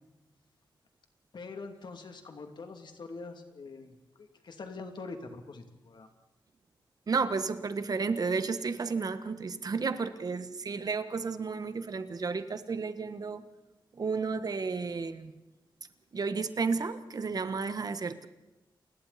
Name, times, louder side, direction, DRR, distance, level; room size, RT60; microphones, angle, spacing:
voice 1, 1.3-6.1, left 3 dB, 65° left, 5 dB, 2.8 m, -44 dB
voice 2, 7.1-13.5 13.9-15.3 16.1-18.3, right 4 dB, 50° right, 11 dB, 1.3 m, -32 dB
29.5 x 21.0 x 4.3 m, 1.0 s
wide cardioid pair, 155°, 8 cm